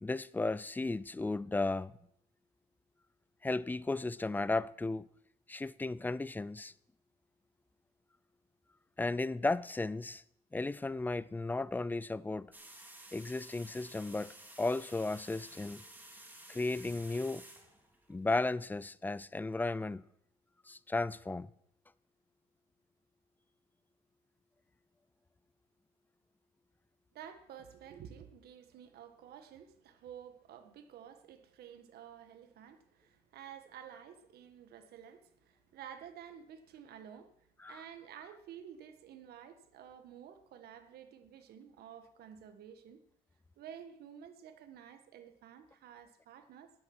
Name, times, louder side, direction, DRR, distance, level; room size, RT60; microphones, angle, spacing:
voice 1, 0.0-1.9 3.4-5.0 5.5-6.7 9.0-10.2 10.5-12.5 13.1-15.8 16.5-17.4 18.1-20.0 20.7-21.5 37.6-37.8, left 2 dB, 10° left, 0.4 m, -34 dB
sound 1, 12.5-18.4, right 1 dB, 10° right, 2.5 m, -53 dB
voice 2, 27.1-43.0 43.6-46.7, right 9 dB, 70° right, 1.6 m, -52 dB
13.0 x 9.5 x 6.1 m
cardioid pair, 110°, 17 cm